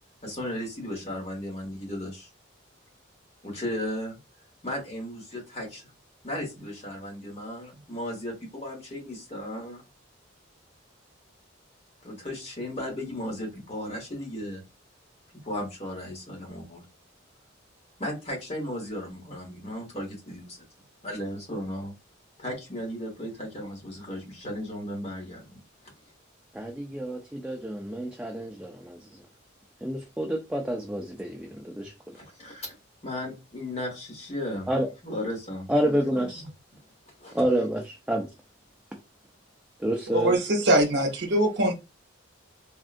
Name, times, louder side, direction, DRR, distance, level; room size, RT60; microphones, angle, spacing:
voice 1, 0.2-2.3 3.4-4.2 4.6-5.9 6.2-9.8 12.0-14.6 15.4-16.8 18.0-20.6 21.0-21.9 22.4-25.6 32.1-32.8 33.0-34.7 35.0-36.5 37.2-37.4, left 1 dB, 30° left, 1.3 m, -35 dB
voice 2, 26.5-29.0 29.8-31.9 34.7-34.9 35.7-36.4 37.3-38.3 39.8-40.4, right 1 dB, 5° right, 0.3 m, -28 dB
voice 3, 40.1-41.7, right 1 dB, 55° right, 0.8 m, -22 dB
3.5 x 2.4 x 2.4 m
head